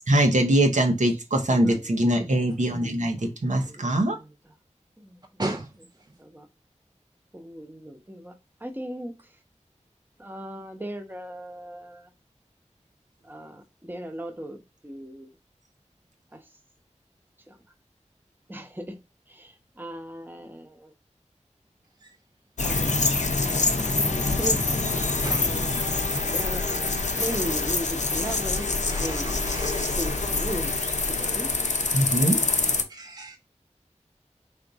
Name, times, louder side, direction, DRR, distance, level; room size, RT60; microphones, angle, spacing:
voice 1, 0.1-4.2 31.9-32.4, right 1 dB, 85° right, 0.8 m, -22 dB
voice 2, 1.5-1.9 3.6-4.5 5.0-5.6 6.2-6.5 7.3-8.3 8.6-9.3 10.2-12.1 13.2-15.3 16.3-16.5 17.5-17.6 18.5-19.0 19.3-20.9 22.6-22.9 23.9-24.6 25.4-26.0 26.3-28.7 29.0-29.4 29.9-30.8 31.0-31.5, right 1 dB, 15° right, 0.9 m, -37 dB
sound 1, 22.6-32.8, left 3 dB, 75° left, 0.6 m, -25 dB
voice 3, 25.2-25.6 26.1-26.3 27.2-27.3 28.2-28.3 28.9-29.9 32.0-32.1 32.9-33.4, right 2 dB, 35° right, 0.5 m, -35 dB
3.5 x 2.5 x 3.9 m
wide cardioid pair, 45°, 12 cm